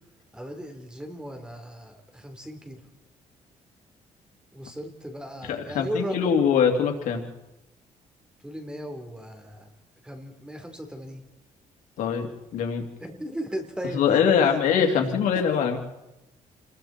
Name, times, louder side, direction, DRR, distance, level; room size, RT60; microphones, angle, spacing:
voice 1, 0.3-2.8 4.5-6.3 8.4-9.7 10.0-11.2 13.0-14.6 14.9-15.0, equal, 5° right, 4 dB, 3.8 m, -36 dB
voice 2, 5.5-7.2 12.0-12.8 13.9-15.8, left 7 dB, 90° left, 3 dB, 2.9 m, -23 dB
28.5 x 21.5 x 4.4 m, 0.97 s
cardioid pair, 125°, 13 cm